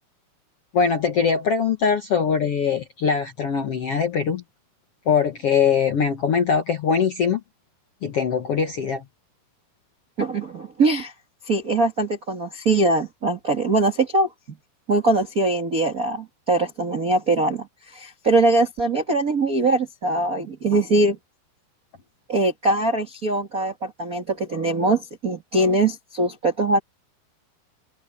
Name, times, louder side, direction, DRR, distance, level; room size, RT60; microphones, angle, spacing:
voice 1, 0.7-4.4 5.1-7.4 8.0-9.0, left 6 dB, 60° left, 1.6 m, -22 dB
voice 2, 10.2-11.1 11.4-14.6 14.9-21.2 22.3-26.8, right 2 dB, 45° right, 1.1 m, -22 dB
open air
omnidirectional pair, 4.6 m